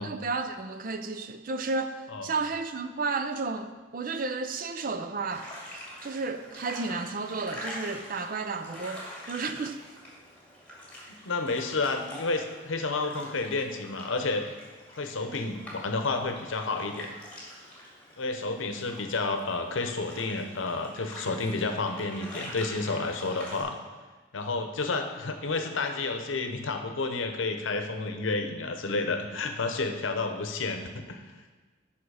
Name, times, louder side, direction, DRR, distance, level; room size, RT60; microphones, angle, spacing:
voice 1, 0.0-9.8, right 3 dB, 45° right, 0.5 m, -33 dB
sound 1, 5.3-23.6, equal, 5° left, 2.0 m, -45 dB
voice 2, 11.2-14.5 14.9-17.1 18.2-23.8 24.3-31.2, left 3 dB, 75° left, 0.8 m, -30 dB
8.8 x 5.7 x 4.8 m
head